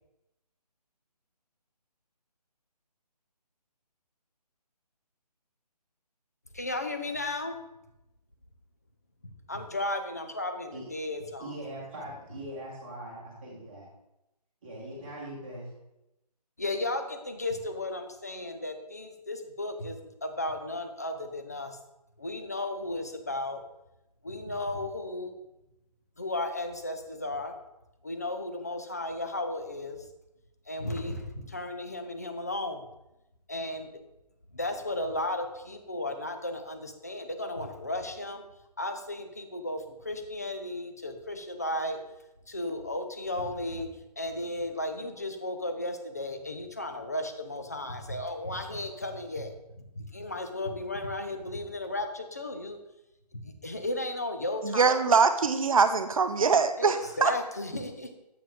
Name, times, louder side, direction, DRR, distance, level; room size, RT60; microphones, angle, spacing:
voice 1, 6.5-7.6 9.2-11.6 16.6-21.8 22.2-23.6 24.2-25.3 26.2-27.5 28.0-30.1 30.7-32.8 33.5-34.0 34.5-38.5 38.8-42.0 42.5-43.9 44.2-52.8 53.3-55.1 56.8-58.1, left 1 dB, 25° left, 6 dB, 0.5 m, -34 dB
voice 2, 11.4-13.9 14.6-15.7, right 1 dB, 20° right, -8 dB, 1.2 m, -41 dB
voice 3, 54.6-57.3, right 5 dB, 55° right, 10 dB, 0.6 m, -23 dB
7.4 x 4.5 x 3.6 m, 0.91 s
hypercardioid pair, 175°, 21 cm